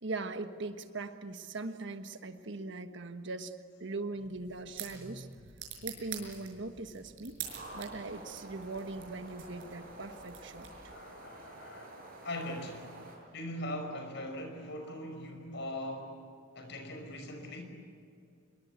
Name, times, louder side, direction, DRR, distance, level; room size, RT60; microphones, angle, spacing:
voice 1, 0.0-5.3 5.8-7.4 7.7-10.7, right 3 dB, 65° right, 8 dB, 1.4 m, -40 dB
sound 1, 4.1-11.1, right 8 dB, 80° right, 6.0 m, -47 dB
sound 2, 7.4-13.2, right 1 dB, 45° right, 7.6 m, -49 dB
voice 2, 10.9-11.9 12.2-12.9 13.3-16.1 16.6-17.6, left 1 dB, 65° left, 5 dB, 5.5 m, -40 dB
26.5 x 23.0 x 8.3 m, 2.4 s
head